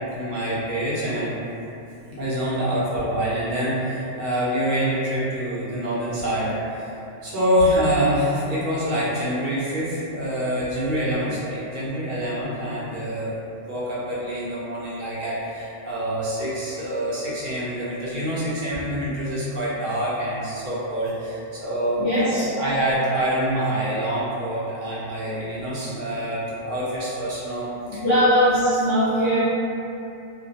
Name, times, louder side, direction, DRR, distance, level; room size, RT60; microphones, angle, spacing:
voice 1, 0.1-1.3 2.2-6.9 7.2-13.3 13.7-27.7 27.9-28.0, equal, 50° right, -9 dB, 0.7 m, -26 dB
voice 2, 22.0-22.4 27.9-29.4, equal, 45° left, -14 dB, 0.8 m, -20 dB
2.2 x 2.2 x 2.7 m, 2.8 s
omnidirectional pair, 1.3 m